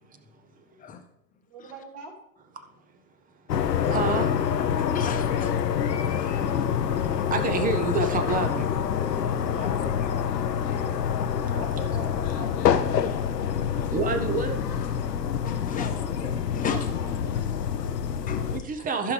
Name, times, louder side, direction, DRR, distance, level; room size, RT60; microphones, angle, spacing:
voice 1, 1.5-2.1 5.0-5.5 5.9-6.0 9.6-10.3 11.5-13.0 15.7-16.1 16.6-16.8, right 3 dB, 50° right, -1 dB, 3.4 m, -42 dB
sound 1, 3.5-18.6, left 8 dB, 80° left, 0.8 m, -26 dB
voice 2, 3.8-4.3 4.7-4.8 6.0-8.7 9.1-9.2 13.9-14.6 18.5-19.1, right 4 dB, 15° right, 7 dB, 0.9 m, -29 dB
voice 3, 4.6-5.5 7.3-7.4 8.9-10.2 10.7-10.9 11.4-11.6 12.9-13.1 13.7-13.9 15.4-16.0 16.5-16.9 17.6-18.5, left 6 dB, 15° left, 5 dB, 1.1 m, -38 dB
15.0 x 5.8 x 3.4 m, 0.76 s
hypercardioid pair, 105°, 48 cm